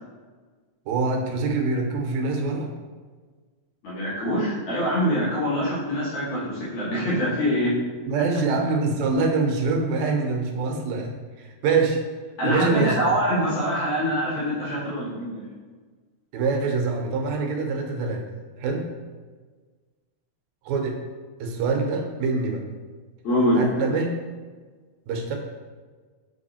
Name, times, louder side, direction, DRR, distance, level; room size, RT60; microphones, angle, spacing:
voice 1, 0.9-2.7 8.1-12.0 12.4-13.0 16.3-18.2 18.6-18.9 20.7-21.0 21.4-22.6 23.6-24.1 25.1-25.4, right 4 dB, 75° right, 3 dB, 2.1 m, -24 dB
voice 2, 3.8-7.7 12.4-15.6 23.2-23.6, equal, 70° left, -8 dB, 2.7 m, -24 dB
7.3 x 3.5 x 4.2 m, 1.4 s
omnidirectional pair, 3.4 m